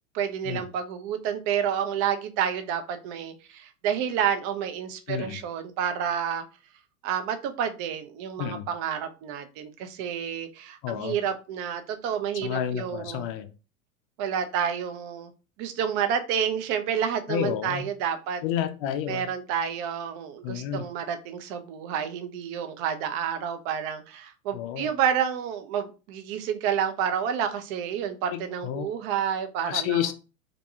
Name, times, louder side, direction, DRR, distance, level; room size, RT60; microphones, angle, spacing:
voice 1, 0.1-6.4 7.0-13.3 14.2-15.3 15.6-18.4 19.1-30.0, right 8 dB, 30° right, 8 dB, 0.4 m, -29 dB
voice 2, 5.1-5.4 8.4-8.7 10.8-11.2 12.3-13.5 17.3-17.9 18.4-19.3 20.4-20.9 24.5-24.9 28.3-28.9 29.7-30.1, left 10 dB, 40° left, 9 dB, 0.5 m, -30 dB
2.6 x 2.2 x 2.8 m, 0.32 s
hypercardioid pair, 90°, 43 cm